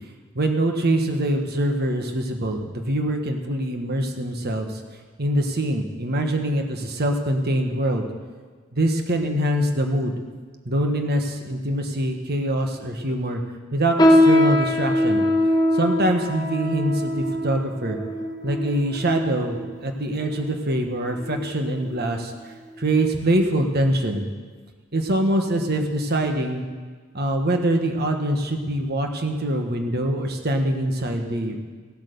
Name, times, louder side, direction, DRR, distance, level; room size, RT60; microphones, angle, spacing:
voice 1, 0.3-4.8 5.2-8.0 8.7-10.1 10.6-13.4 13.7-15.2 15.7-18.0 18.4-24.2 24.9-26.6 27.1-31.6, right 1 dB, 50° right, 4 dB, 1.4 m, -24 dB
sound 1, 14.0-19.7 20.3-20.5 21.2-21.5 21.9-22.1 22.8-22.9, left 1 dB, 20° left, 1.1 m, -21 dB
16.0 x 8.3 x 6.9 m, 1.5 s
head